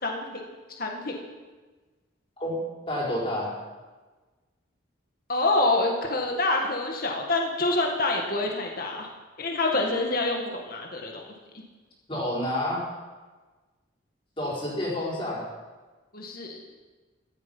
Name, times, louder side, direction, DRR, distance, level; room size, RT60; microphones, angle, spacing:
voice 1, 0.0-0.4 0.8-1.2 5.3-9.1 9.4-11.3 16.1-16.6, left 2 dB, 45° left, 1 dB, 1.9 m, -26 dB
voice 2, 2.4-3.6 12.1-12.9 14.4-15.4, left 1 dB, 25° left, -5 dB, 4.7 m, -29 dB
15.0 x 13.0 x 5.5 m, 1.3 s
head